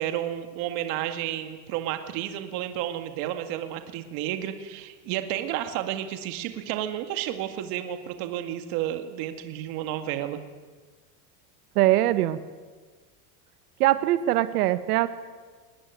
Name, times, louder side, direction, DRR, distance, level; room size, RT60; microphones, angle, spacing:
voice 1, 0.0-10.4, right 12 dB, 50° right, 7 dB, 2.0 m, -31 dB
voice 2, 11.7-12.4 13.8-15.1, right 15 dB, 80° right, 12 dB, 1.3 m, -22 dB
20.5 x 19.0 x 9.3 m, 1.4 s
supercardioid pair, 155°, 45 cm